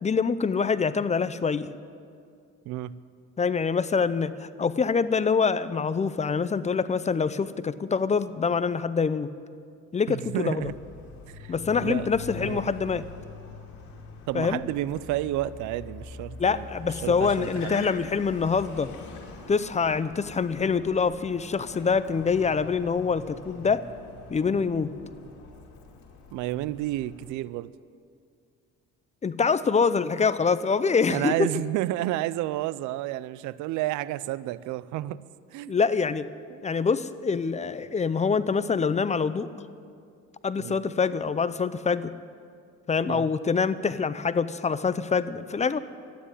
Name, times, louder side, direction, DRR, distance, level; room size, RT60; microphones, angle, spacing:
voice 1, 0.0-1.7 3.4-9.3 9.9-10.7 11.5-13.0 14.3-14.6 16.4-18.9 19.5-23.9 24.3-24.9 29.2-31.3 35.7-36.3 36.6-39.5 40.4-42.1 42.9-45.8, left 5 dB, 25° left, 15 dB, 0.6 m, -25 dB
voice 2, 2.7-3.0 10.1-10.7 11.3-11.5 11.8-12.1 12.4-12.6 14.3-16.7 17.0-17.9 26.3-27.7 31.1-35.2 35.5-35.8 36.5-36.6 40.6-40.8 43.0-43.3, right 15 dB, 80° right, 18 dB, 0.5 m, -31 dB
Car, 10.6-27.3, left 4 dB, 70° left, 2.5 m, -44 dB
12.5 x 9.9 x 9.9 m, 2.3 s
cardioid pair, 95°, 29 cm